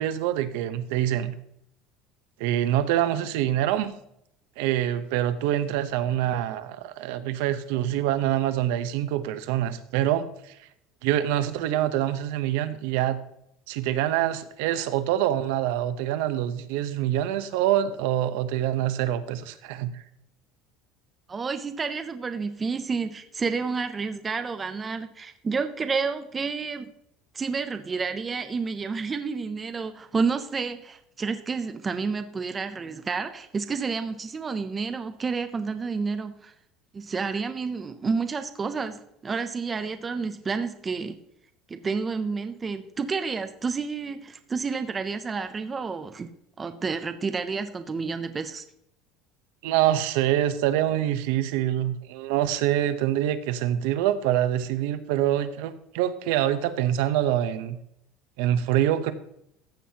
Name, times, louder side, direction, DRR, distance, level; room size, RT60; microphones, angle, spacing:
voice 1, 0.0-1.3 2.4-3.9 4.6-10.6 11.0-13.2 13.7-20.0 49.6-57.8 58.4-59.1, right 12 dB, 70° right, 0.7 m, -25 dB
voice 2, 21.3-26.9 27.3-36.5 36.9-41.2 41.7-46.3 46.6-48.7, right 5 dB, 15° right, 0.4 m, -30 dB
14.5 x 7.4 x 2.8 m
cardioid pair, 175°, 0 cm